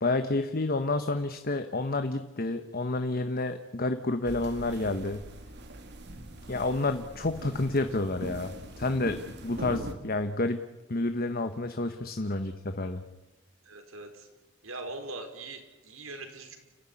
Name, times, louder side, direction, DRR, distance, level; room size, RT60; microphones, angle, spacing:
voice 1, 0.0-5.2 6.5-10.6 10.9-13.0, left 2 dB, 45° left, 8 dB, 1.2 m, -29 dB
sound 1, 4.2-9.9, right 1 dB, 55° right, 2.4 m, -42 dB
voice 2, 13.6-14.3 14.6-16.6, right 2 dB, 80° right, 6 dB, 4.5 m, -41 dB
29.5 x 15.0 x 10.0 m, 1.1 s
head